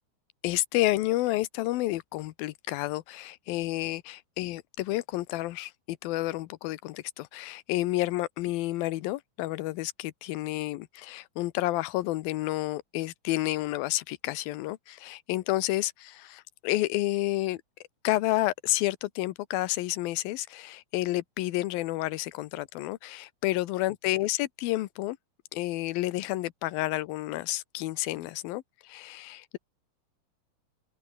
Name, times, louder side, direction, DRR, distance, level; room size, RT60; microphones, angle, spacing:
voice 1, 0.4-17.6 18.0-25.2 25.5-29.6, left 17 dB, 80° left, 2.6 m, -30 dB
open air
omnidirectional pair, 4.4 m